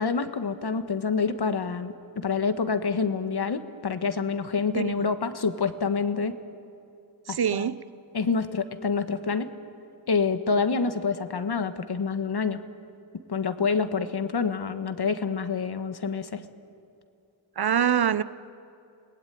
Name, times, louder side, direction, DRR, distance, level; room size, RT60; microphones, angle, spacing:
voice 1, 0.0-6.3 7.3-7.7 8.1-9.5 10.1-12.6 13.3-16.4, left 5 dB, 60° left, 9 dB, 1.5 m, -27 dB
voice 2, 7.3-7.8 17.6-18.2, right 8 dB, 55° right, 16 dB, 0.8 m, -24 dB
29.5 x 20.0 x 9.3 m, 2.6 s
wide cardioid pair, 115°, 44 cm